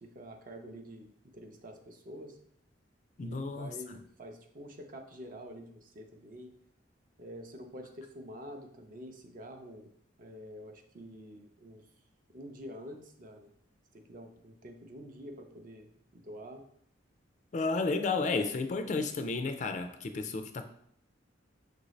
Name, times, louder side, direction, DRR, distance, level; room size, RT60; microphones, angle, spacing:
voice 1, 0.0-2.4 3.2-6.5 7.2-9.9 10.2-11.8 12.3-13.5 13.9-16.6, equal, 45° right, 5 dB, 0.5 m, -47 dB
voice 2, 3.2-3.7 17.5-20.6, left 3 dB, 40° left, 8 dB, 0.3 m, -32 dB
6.2 x 2.6 x 3.1 m, 0.68 s
head